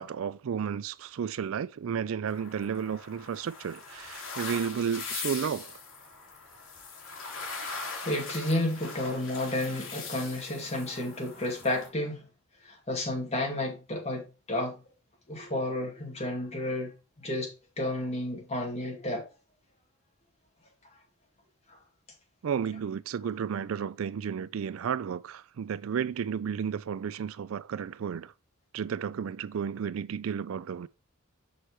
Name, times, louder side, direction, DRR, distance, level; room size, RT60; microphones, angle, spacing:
voice 1, 0.0-5.8 22.4-28.3 28.7-30.9, right 7 dB, 65° right, 0.4 m, -32 dB
sound 1, 2.3-11.9, left 4 dB, 70° left, 2.6 m, -41 dB
voice 2, 8.0-12.3 12.6-14.8 15.3-16.9 17.2-19.3 21.7-21.8, left 1 dB, 30° left, 2.2 m, -31 dB
6.4 x 5.8 x 3.1 m
head